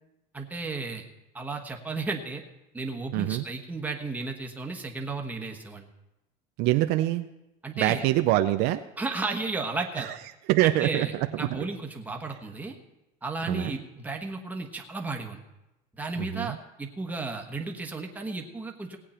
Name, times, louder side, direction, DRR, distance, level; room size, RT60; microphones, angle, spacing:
voice 1, 0.3-1.0 1.3-2.4 2.7-5.8 7.6-8.1 9.0-10.1 10.6-12.7 13.2-15.4 16.0-19.0, right 3 dB, 10° right, 2 dB, 1.3 m, -34 dB
voice 2, 3.1-3.4 6.6-7.3 7.8-8.8 10.0-10.1 10.5-11.7 13.5-13.8 16.2-16.6, right 15 dB, 60° right, 9 dB, 0.5 m, -25 dB
18.0 x 8.5 x 4.4 m, 0.95 s
cardioid pair, 145°, 19 cm